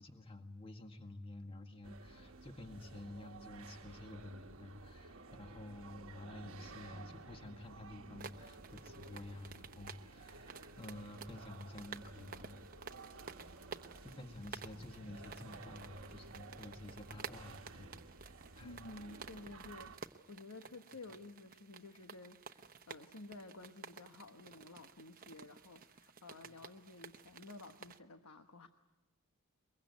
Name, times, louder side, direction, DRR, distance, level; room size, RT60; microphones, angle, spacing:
voice 1, 0.0-12.6 14.0-18.0 18.6-18.8 26.4-26.5, left 1 dB, 25° left, 5 dB, 1.8 m, -50 dB
sound 1, 1.8-20.0, right 3 dB, 65° right, 1.2 m, -54 dB
sound 2, 8.2-28.0, right 5 dB, 40° right, 0.9 m, -53 dB
voice 2, 18.6-28.7, left 2 dB, 85° left, 7 dB, 1.2 m, -53 dB
23.0 x 22.5 x 9.4 m, 1.0 s
head